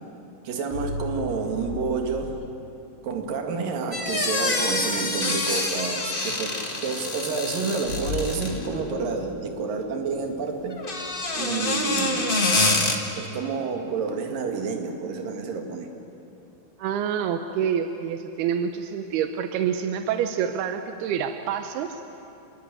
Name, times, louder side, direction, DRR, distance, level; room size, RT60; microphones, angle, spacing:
voice 1, 0.5-2.4 3.0-10.8 11.4-12.5 13.2-15.9, right 4 dB, 65° right, 3 dB, 3.7 m, -29 dB
sound 1, 0.7-2.3 7.8-10.9, left 2 dB, 80° left, 7.5 m, -34 dB
Squeaky door hinge, 3.9-8.7 10.7-12.9, left 2 dB, 50° left, 0.6 m, -26 dB
voice 2, 16.8-22.0, right 8 dB, 85° right, 7 dB, 2.9 m, -27 dB
27.5 x 22.0 x 9.0 m, 2.8 s
omnidirectional pair, 4.4 m